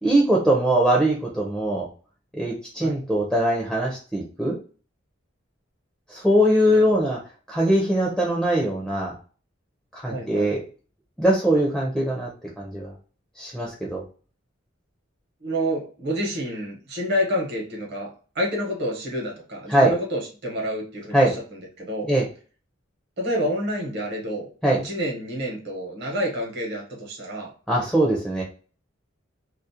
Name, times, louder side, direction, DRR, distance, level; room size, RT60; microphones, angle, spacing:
voice 1, 0.0-1.9 2.3-4.6 6.1-7.2 7.5-9.1 9.9-10.6 11.2-12.3 12.6-12.9 13.4-14.0 19.7-19.9 21.1-21.3 22.1-22.2 24.6-24.8 27.7-28.4, right 1 dB, ahead, -3 dB, 0.5 m, -21 dB
voice 2, 10.1-10.5 15.4-18.1 18.3-22.1 23.2-24.5 24.8-27.5, equal, 55° right, 0 dB, 0.9 m, -28 dB
2.4 x 2.0 x 2.7 m, 0.38 s
head